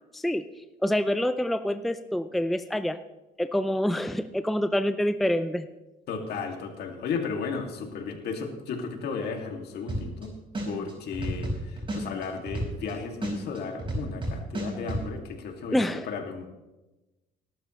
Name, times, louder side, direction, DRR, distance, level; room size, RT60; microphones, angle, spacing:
voice 1, 0.1-0.4 0.8-3.0 3.4-5.7 15.7-16.1, left 1 dB, ahead, 11 dB, 0.5 m, -26 dB
voice 2, 6.1-10.3 10.6-16.5, left 5 dB, 65° left, 3 dB, 2.5 m, -34 dB
sound 1, 9.9-10.2 10.5-12.9 13.2-15.0, right 1 dB, 30° right, 5.1 m, -30 dB
19.0 x 12.0 x 3.2 m, 1.1 s
cardioid pair, 105°, 18 cm